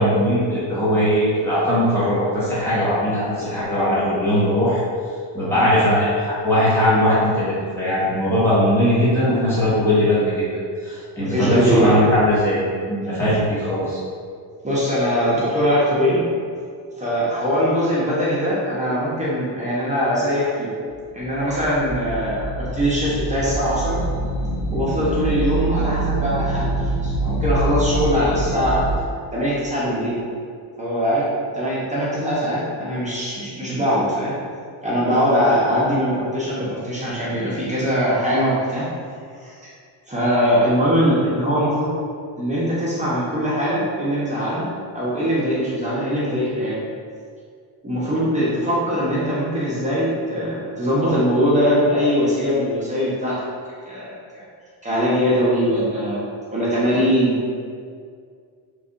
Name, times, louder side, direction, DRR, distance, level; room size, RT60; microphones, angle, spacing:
voice 1, 0.0-4.8 5.3-10.4 10.8-14.0, equal, 5° left, -11 dB, 1.3 m, -19 dB
voice 2, 11.2-12.0 14.6-16.2 17.0-20.7 21.1-22.5 22.7-24.0 24.7-26.7 27.0-28.9 29.3-30.2 30.8-31.3 31.5-34.3 34.8-38.9 39.4-39.6 40.1-41.9 42.4-44.6 44.9-46.8 47.8-53.4 53.8-54.4 54.8-56.2 56.5-57.4, equal, 15° right, -9 dB, 0.9 m, -21 dB
sound 1, 21.2-28.9, right 2 dB, 45° left, 1.1 m, -25 dB
3.4 x 3.3 x 2.6 m, 2.2 s
cardioid pair, 95°, 47 cm